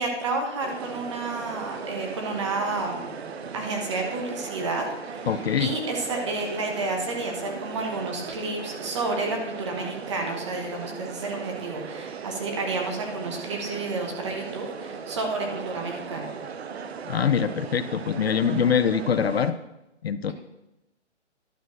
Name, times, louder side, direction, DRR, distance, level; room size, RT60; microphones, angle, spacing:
voice 1, 0.0-3.1 3.5-16.3, right 3 dB, 25° right, 2 dB, 1.1 m, -30 dB
sound 1, 0.6-19.5, right 6 dB, 60° right, 0.7 m, -38 dB
voice 2, 5.3-5.7 17.1-19.6 20.0-20.3, left 7 dB, 60° left, 11 dB, 0.5 m, -24 dB
11.5 x 4.4 x 6.2 m, 0.93 s
hypercardioid pair, 170°, 36 cm